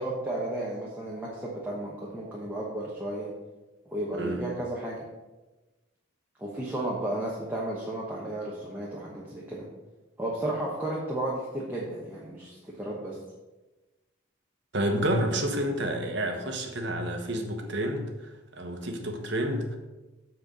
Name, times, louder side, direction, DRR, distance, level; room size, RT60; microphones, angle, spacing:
voice 1, 0.0-3.3 3.8-5.0 6.4-9.7 10.2-13.2, right 1 dB, 10° right, -5 dB, 1.1 m, -33 dB
voice 2, 14.7-19.8, right 1 dB, 55° right, 3 dB, 1.2 m, -29 dB
7.6 x 4.4 x 6.7 m, 1.1 s
head